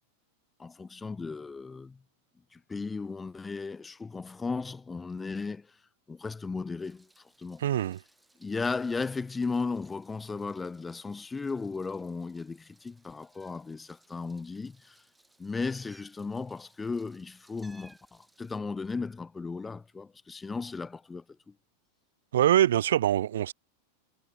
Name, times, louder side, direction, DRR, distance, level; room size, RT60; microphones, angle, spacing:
voice 1, 0.6-2.0 2.5-5.7 6.1-7.6 8.4-15.0 15.4-21.5, left 4 dB, 10° left, 0.6 m, -36 dB
Meow, 6.8-18.6, right 2 dB, 5° right, 4.3 m, -63 dB
voice 2, 7.6-8.0 22.3-23.5, right 11 dB, 60° right, 0.5 m, -24 dB
figure-of-eight pair, 90°, 0 cm